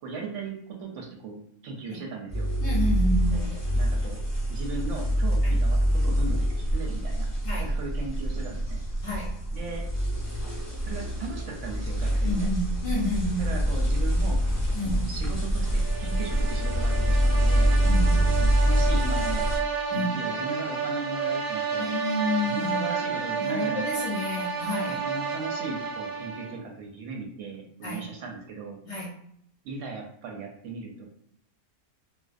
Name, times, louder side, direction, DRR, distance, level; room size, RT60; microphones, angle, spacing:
voice 1, 0.0-2.5 3.3-4.2 4.5-6.4 6.7-7.3 7.6-8.8 9.5-9.8 10.8-12.5 13.4-14.4 14.8-18.0 18.4-19.5 19.9-21.9 22.4-24.1 24.9-28.8 29.6-31.1, right 3 dB, 65° right, 1 dB, 0.8 m, -37 dB
sound 1, 2.3-19.6, equal, 15° left, 0.6 m, -25 dB
voice 2, 2.6-3.4 5.4-5.6 7.4-7.7 9.0-9.3 12.2-13.5 14.7-15.1 17.8-18.3 19.9-20.2 21.8-22.9 23.3-25.0 27.8-28.1 28.9-29.1, left 1 dB, 60° left, -4 dB, 0.8 m, -30 dB
sound 2, 15.7-26.7, right 6 dB, 85° right, 1.1 m, -31 dB
2.5 x 2.1 x 2.4 m, 0.68 s
omnidirectional pair, 1.5 m